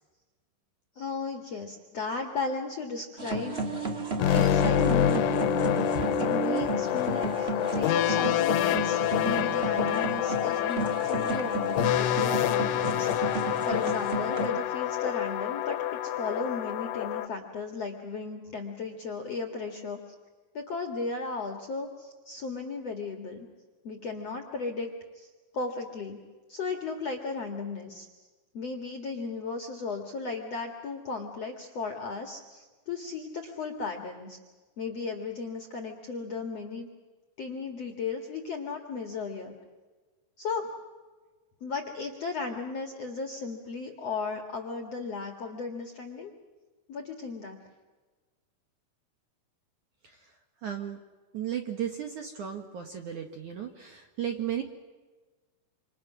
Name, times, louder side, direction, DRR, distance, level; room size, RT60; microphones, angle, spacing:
voice 1, 1.0-3.6 4.3-20.0 20.5-23.5 23.8-24.9 25.1-26.2 26.5-28.1 28.5-34.4 34.8-36.9 37.4-39.6 40.4-40.7 41.6-46.3 46.9-47.6, left 4 dB, 50° left, 3 dB, 2.0 m, -35 dB
sound 1, 3.2-14.5, right 3 dB, 30° right, 1.1 m, -33 dB
sound 2, 4.2-17.3, left 11 dB, 85° left, 3.4 m, -27 dB
voice 2, 50.6-51.0 51.3-54.6, right 9 dB, 60° right, 3 dB, 2.3 m, -35 dB
28.5 x 27.5 x 6.2 m, 1.3 s
omnidirectional pair, 5.5 m